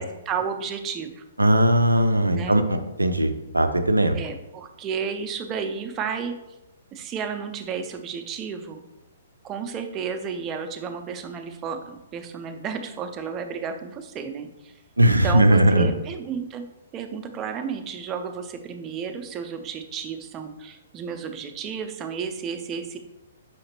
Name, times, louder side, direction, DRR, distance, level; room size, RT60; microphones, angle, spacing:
voice 1, 0.0-1.2 2.3-2.6 4.1-6.3 6.9-8.8 9.4-14.7 15.0-16.6 16.9-23.0, right 6 dB, 25° right, 6 dB, 0.4 m, -32 dB
voice 2, 1.4-4.2 15.0-15.9, right 1 dB, 80° right, 8 dB, 0.4 m, -19 dB
5.7 x 2.8 x 2.9 m, 0.96 s
figure-of-eight pair, 115°, 0 cm